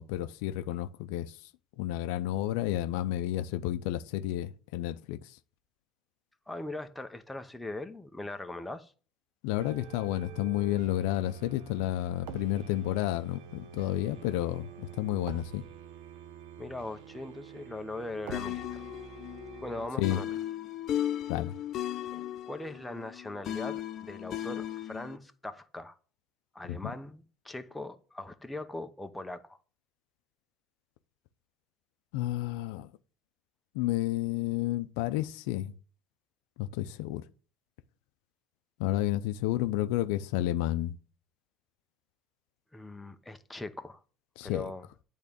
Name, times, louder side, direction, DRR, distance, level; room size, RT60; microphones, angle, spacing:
voice 1, 0.0-1.4 1.8-5.4 9.4-15.6 20.0-20.2 21.3-21.5 26.7-26.8 32.1-32.9 33.7-35.7 36.6-37.2 38.8-41.0 44.4-44.7, left 14 dB, 85° left, 0.4 m, -31 dB
voice 2, 6.5-8.9 16.6-18.8 19.6-20.3 22.1-26.0 26.5-29.6 42.7-44.0 44.4-44.9, left 2 dB, 5° left, 0.8 m, -40 dB
sound 1, 9.6-19.9, right 6 dB, 80° right, 1.0 m, -47 dB
sound 2, 18.3-25.2, left 11 dB, 55° left, 0.7 m, -36 dB
8.4 x 3.6 x 6.8 m
supercardioid pair, 105°, 0 cm